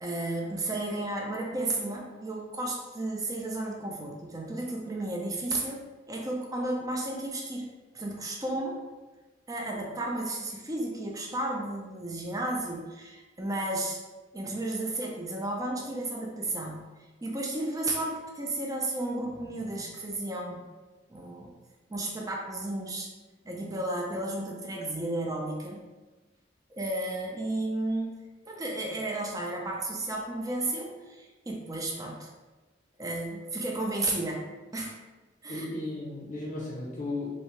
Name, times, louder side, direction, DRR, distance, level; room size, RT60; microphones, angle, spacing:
voice 1, 0.0-7.7 7.9-8.8 9.5-14.0 14.3-16.8 17.2-20.6 21.1-21.5 21.9-23.1 23.4-25.8 26.7-28.2 28.5-32.3 33.0-34.4 34.7-35.0 35.4-35.7, right 2 dB, 20° right, -1 dB, 0.4 m, -33 dB
voice 2, 35.5-37.3, left 2 dB, 40° left, -5 dB, 0.6 m, -35 dB
2.6 x 2.1 x 3.0 m, 1.2 s
head